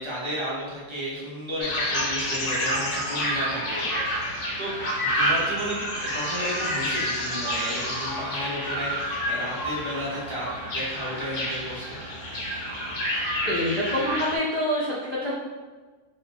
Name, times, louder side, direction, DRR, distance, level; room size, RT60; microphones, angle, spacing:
voice 1, 0.0-4.7 5.1-12.0, equal, 25° right, -7 dB, 0.6 m, -33 dB
sound 1, 1.6-14.4, equal, 70° left, 1.2 m, -29 dB
voice 2, 13.4-15.3, left 1 dB, 85° left, -8 dB, 0.4 m, -26 dB
3.0 x 2.2 x 4.2 m, 1.3 s
omnidirectional pair, 1.8 m